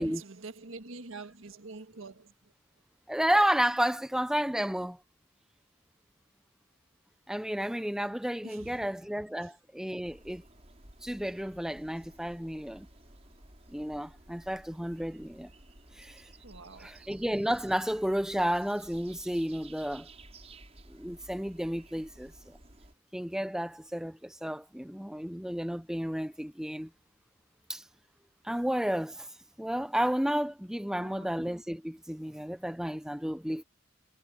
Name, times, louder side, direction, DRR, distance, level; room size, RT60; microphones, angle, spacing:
voice 1, 0.0-2.5 8.4-8.9 9.3-9.6 16.4-17.1 30.9-31.4, right 3 dB, 85° right, 1.6 m, -46 dB
voice 2, 3.1-5.0 7.3-10.4 11.0-12.9 13.7-15.5 15.9-16.2 16.8-20.1 20.9-22.6 23.1-26.9 27.7-27.8 28.4-29.3 29.6-33.6, equal, 5° right, 0.6 m, -32 dB
sound 1, 10.0-22.9, right 2 dB, 30° right, 6.4 m, -54 dB
head